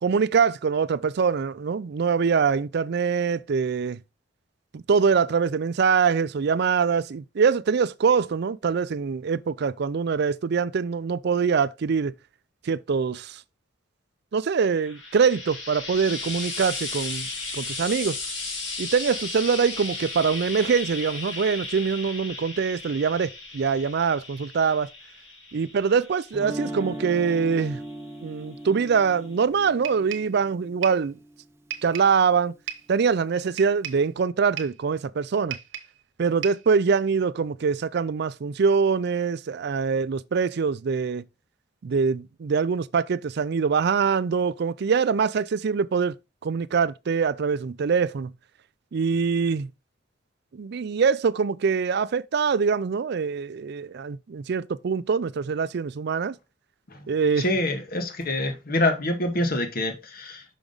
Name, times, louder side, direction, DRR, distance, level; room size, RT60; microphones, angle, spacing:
voice 1, 0.0-4.0 4.7-12.1 12.6-13.4 14.3-17.3 17.5-18.2 18.8-24.9 25.5-27.8 28.2-31.2 31.8-32.5 32.9-35.6 36.2-41.2 41.8-46.2 46.4-48.3 48.9-49.7 50.5-56.4 57.1-57.4, right 5 dB, 55° right, 0.4 m, -24 dB
Frying (food), 14.6-28.0 29.0-29.1, left 3 dB, 70° left, 2.7 m, -36 dB
Guitar, 26.3-32.3, right 1 dB, 15° right, 0.8 m, -39 dB
sound 1, 29.8-30.4 30.8-31.1 31.7-32.2 32.7-33.0 33.6-34.1 34.6-34.8 35.5-36.0 36.4-36.7, right 10 dB, 75° right, 1.0 m, -36 dB
voice 2, 57.4-60.4, left 1 dB, 50° left, 1.3 m, -26 dB
6.0 x 5.1 x 3.9 m
head